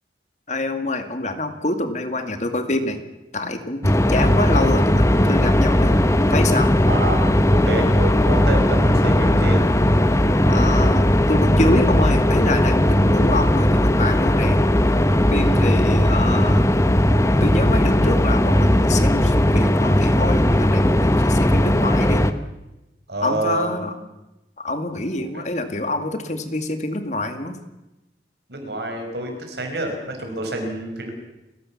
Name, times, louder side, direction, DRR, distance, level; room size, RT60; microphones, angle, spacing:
voice 1, 0.5-3.0 3.3-6.7 10.5-14.6 15.3-16.7 17.4-22.2 23.2-23.9 24.6-27.6, left 2 dB, 40° left, 8 dB, 2.1 m, -26 dB
sound 1, 3.8-22.3, left 1 dB, 15° left, 1.0 m, -17 dB
voice 2, 6.9-7.2 7.5-9.6 15.5-15.7 23.1-23.9 25.2-25.3 28.5-31.2, right 1 dB, 75° right, 3 dB, 5.6 m, -27 dB
29.5 x 15.0 x 7.3 m, 0.97 s
head